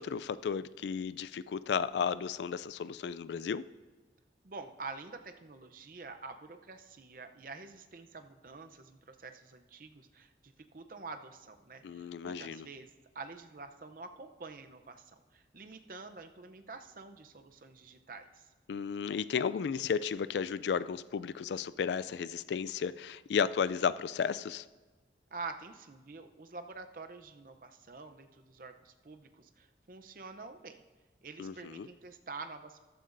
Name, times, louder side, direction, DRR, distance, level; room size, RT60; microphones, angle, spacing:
voice 1, 0.0-3.7 11.8-12.7 18.7-24.7 31.4-31.9, left 6 dB, 80° left, 17 dB, 0.3 m, -33 dB
voice 2, 4.4-18.4 25.3-30.8 31.2-32.8, right 4 dB, 50° right, 7 dB, 0.6 m, -47 dB
14.0 x 13.0 x 2.6 m, 1.3 s
head